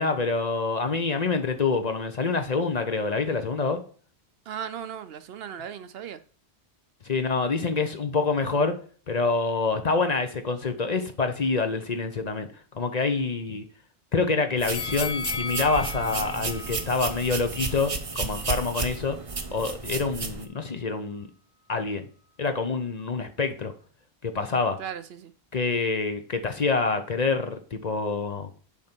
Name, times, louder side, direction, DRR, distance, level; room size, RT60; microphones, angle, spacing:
voice 1, 0.0-3.8 7.0-8.8 9.1-12.5 12.7-13.7 14.1-19.2 19.5-21.3 21.7-22.0 22.4-23.7 24.2-24.8 25.5-28.5, left 4 dB, 45° left, 0.8 m, -26 dB
voice 2, 4.5-6.2 24.8-25.3, right 9 dB, 70° right, 0.8 m, -37 dB
sound 1, 14.6-20.5, right 4 dB, 35° right, 0.8 m, -33 dB
sound 2, 14.7-17.8 18.2-18.3, left 5 dB, 70° left, 1.0 m, -35 dB
7.1 x 5.1 x 4.4 m
omnidirectional pair, 1.1 m